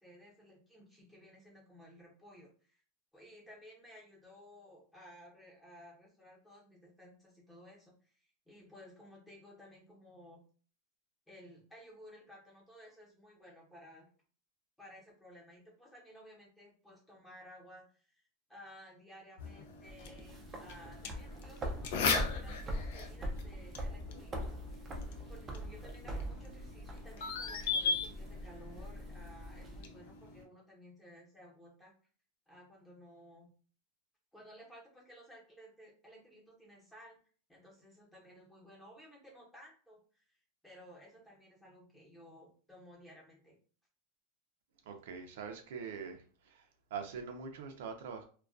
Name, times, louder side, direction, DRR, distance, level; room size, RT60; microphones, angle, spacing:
voice 1, 0.0-2.8 3.1-10.4 11.3-14.1 14.8-18.2 18.5-25.0 25.3-31.9 32.5-33.5 34.3-37.2 37.5-40.4 40.6-43.6, equal, 5° left, -4 dB, 0.8 m, -56 dB
sound 1, 19.4-30.4, left 5 dB, 65° left, 0.4 m, -39 dB
sound 2, 19.9-29.8, equal, 20° right, 0.4 m, -42 dB
voice 2, 44.9-46.6 46.9-48.2, right 6 dB, 75° right, 5 dB, 0.5 m, -43 dB
2.3 x 2.2 x 2.4 m, 0.41 s
supercardioid pair, 155°, 0 cm